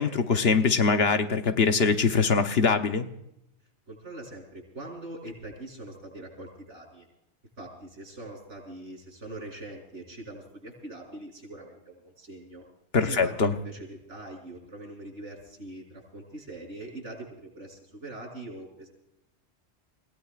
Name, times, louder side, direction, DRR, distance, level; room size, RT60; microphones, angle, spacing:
voice 1, 0.0-3.1 12.9-13.5, left 5 dB, 60° left, 7 dB, 1.2 m, -23 dB
voice 2, 3.9-7.1 7.6-12.6 13.0-18.9, right 2 dB, 85° right, -1 dB, 7.4 m, -42 dB
30.0 x 17.5 x 2.5 m, 0.82 s
omnidirectional pair, 1.2 m